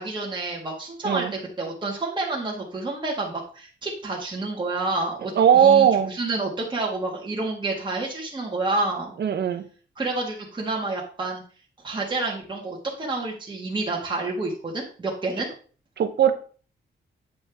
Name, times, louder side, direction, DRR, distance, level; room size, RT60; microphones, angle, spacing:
voice 1, 0.0-9.1 9.9-11.4 11.8-15.5, right 2 dB, 25° right, -3 dB, 1.8 m, -29 dB
voice 2, 5.4-6.1 9.2-9.6 16.0-16.3, right 8 dB, 60° right, 9 dB, 0.9 m, -18 dB
8.7 x 5.2 x 3.5 m, 0.40 s
cardioid pair, 120°, 20 cm